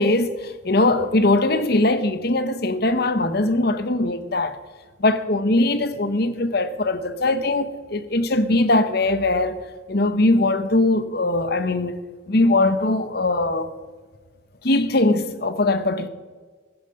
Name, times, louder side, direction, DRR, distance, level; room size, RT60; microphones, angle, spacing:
voice 1, 0.0-4.6 5.0-9.6 9.9-12.0 12.3-13.7 14.6-16.1, left 2 dB, 55° left, 1.0 m, -21 dB
15.0 x 10.5 x 5.3 m
head